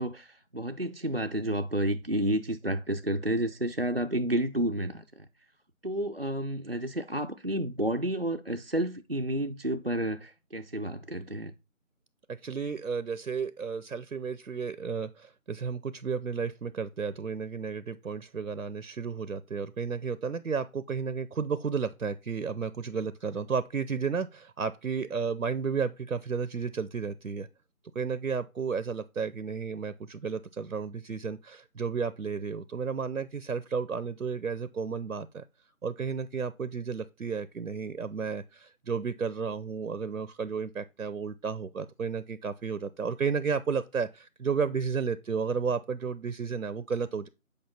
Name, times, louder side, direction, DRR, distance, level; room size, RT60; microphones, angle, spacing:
voice 1, 0.0-5.3 5.8-11.5, right 1 dB, 45° right, 0.4 m, -30 dB
voice 2, 12.3-27.5 27.9-35.4 35.8-47.3, right 5 dB, 80° right, 0.7 m, -32 dB
8.7 x 5.2 x 4.2 m
figure-of-eight pair, 170°, 42 cm